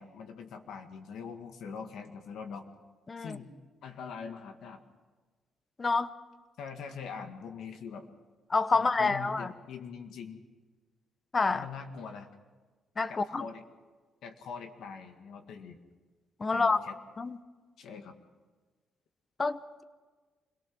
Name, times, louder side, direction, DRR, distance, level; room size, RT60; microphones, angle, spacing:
voice 1, 0.0-2.7 3.2-3.5 3.8-4.8 6.6-8.1 8.7-10.4 11.5-12.3 13.1-13.6 14.2-15.8 16.5-17.0 17.8-18.2, left 6 dB, 75° left, 6 dB, 1.8 m, -43 dB
voice 2, 5.8-6.1 8.5-9.5 11.3-11.6 13.0-13.4 16.4-16.8 17.2-17.4 19.4-19.8, left 3 dB, 30° left, 14 dB, 0.9 m, -28 dB
26.0 x 18.0 x 6.2 m, 1.4 s
cardioid pair, 90°, 0 cm